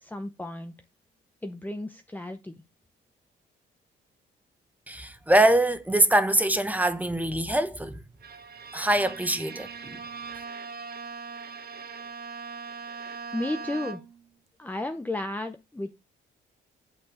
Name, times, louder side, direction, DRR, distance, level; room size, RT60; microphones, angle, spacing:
voice 1, 0.0-0.7 1.4-2.5 13.3-14.0 14.6-16.0, left 1 dB, 10° left, 0.8 m, -33 dB
voice 2, 4.9-8.0 8.7-10.0, right 1 dB, 10° right, 1.1 m, -23 dB
Bowed string instrument, 8.2-14.3, right 5 dB, 50° right, 1.0 m, -40 dB
8.6 x 4.4 x 6.3 m
cardioid pair, 90°, 20 cm